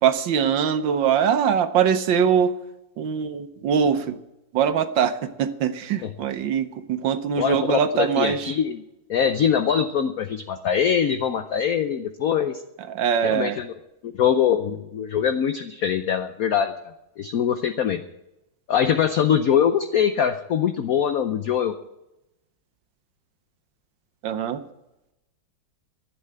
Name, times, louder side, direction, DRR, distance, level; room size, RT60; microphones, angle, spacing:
voice 1, 0.0-2.5 3.0-4.2 4.5-8.5 12.9-13.6 24.2-24.6, right 7 dB, 70° right, 10 dB, 1.6 m, -22 dB
voice 2, 7.4-8.8 9.1-12.6 13.2-13.7 14.0-16.7 17.2-18.0 18.7-21.7, left 8 dB, 60° left, 8 dB, 0.9 m, -23 dB
11.5 x 8.9 x 8.9 m, 0.89 s
omnidirectional pair, 2.2 m